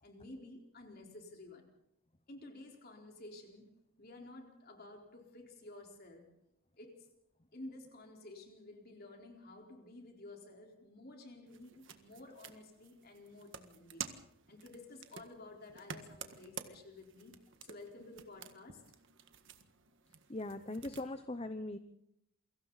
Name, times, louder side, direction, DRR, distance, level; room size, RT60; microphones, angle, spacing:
voice 1, 0.0-1.7 2.3-6.4 6.8-7.1 7.5-14.0 14.5-18.8, left 2 dB, 45° left, 1 dB, 4.2 m, -52 dB
sound 1, 11.5-21.1, right 7 dB, 55° right, 1.7 m, -51 dB
voice 2, 20.3-21.8, left 2 dB, 25° left, 9 dB, 0.8 m, -40 dB
28.5 x 23.5 x 4.1 m, 0.79 s
head